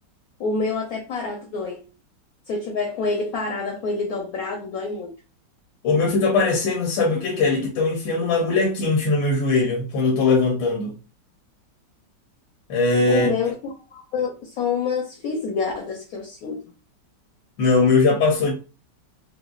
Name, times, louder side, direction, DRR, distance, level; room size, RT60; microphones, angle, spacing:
voice 1, 0.4-1.9 2.5-5.1 13.1-13.5 13.9-16.6, left 4 dB, 65° left, 0.9 m, -27 dB
voice 2, 5.8-10.9 12.7-13.3 17.6-18.5, left 3 dB, 85° left, 1.5 m, -20 dB
5.0 x 2.0 x 2.3 m
omnidirectional pair, 1.9 m